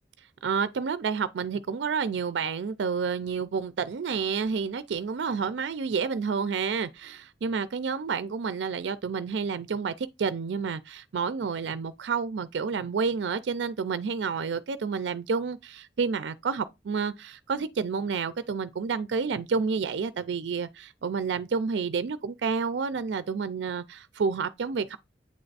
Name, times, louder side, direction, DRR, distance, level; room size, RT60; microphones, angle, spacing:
voice 1, 0.4-25.0, right 5 dB, 75° right, 0.4 m, -29 dB
8.4 x 3.3 x 4.0 m
head